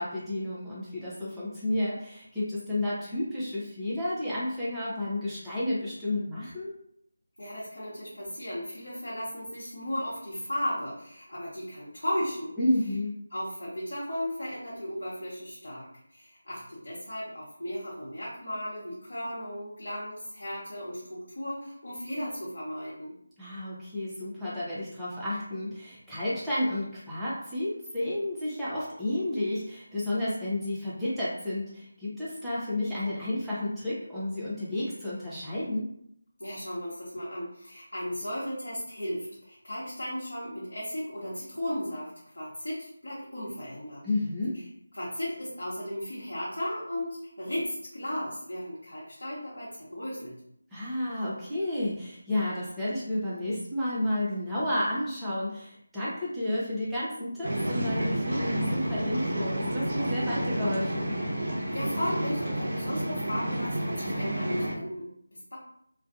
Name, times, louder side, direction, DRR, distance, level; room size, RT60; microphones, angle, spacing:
voice 1, 0.0-6.7 12.6-13.1 23.4-35.9 44.0-44.6 50.7-61.2, left 1 dB, 5° right, -11 dB, 0.6 m, -31 dB
voice 2, 7.4-12.5 13.3-23.2 36.4-44.0 44.9-50.3 61.7-65.6, equal, 75° left, -8 dB, 0.9 m, -35 dB
sound 1, 57.4-64.7, right 1 dB, 50° right, 0.7 m, -30 dB
2.5 x 2.2 x 2.4 m, 0.70 s
figure-of-eight pair, 165°, 0 cm